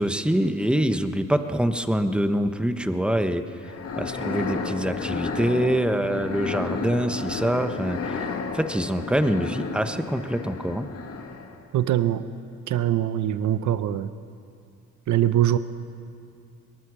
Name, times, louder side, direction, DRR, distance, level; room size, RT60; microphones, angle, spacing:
voice 1, 0.0-3.4 4.0-10.9, right 1 dB, 5° right, 8 dB, 1.2 m, -25 dB
sound 1, 3.6-11.7, left 4 dB, 50° left, 2.0 m, -32 dB
voice 2, 11.7-12.2 12.7-14.1 15.1-15.6, right 12 dB, 70° right, 12 dB, 1.0 m, -22 dB
22.5 x 19.5 x 6.3 m, 2.4 s
cardioid pair, 90°, 30 cm